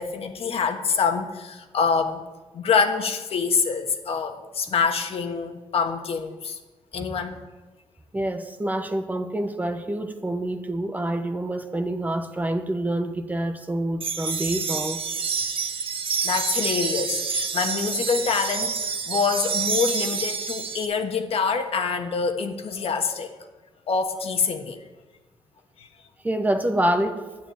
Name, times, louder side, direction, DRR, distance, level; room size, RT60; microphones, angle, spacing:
voice 1, 0.0-2.2 2.5-6.6 6.9-7.3 16.2-23.3 23.9-24.8, left 5 dB, 60° left, 5 dB, 1.4 m, -25 dB
voice 2, 8.1-15.0 26.2-27.2, right 1 dB, 15° right, 8 dB, 0.9 m, -27 dB
sound 1, 14.0-20.9, right 5 dB, 50° right, 1.1 m, -28 dB
11.5 x 9.3 x 9.0 m, 1.2 s
wide cardioid pair, 135°, 11 cm